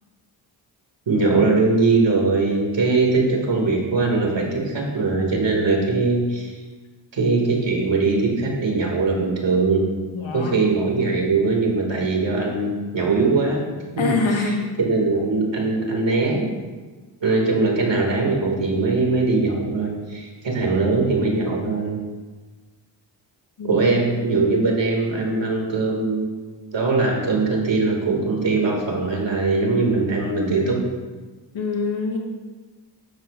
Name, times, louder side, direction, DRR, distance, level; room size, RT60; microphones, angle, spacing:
voice 1, 1.1-6.5 7.1-9.8 10.3-13.6 14.8-16.4 17.2-22.0 23.7-30.8, right 3 dB, 70° right, -1 dB, 2.3 m, -21 dB
voice 2, 10.1-10.5 14.0-14.7 23.6-23.8 31.5-32.2, left 4 dB, 80° left, 1 dB, 1.5 m, -24 dB
12.0 x 7.8 x 2.5 m, 1.3 s
cardioid pair, 45°, 46 cm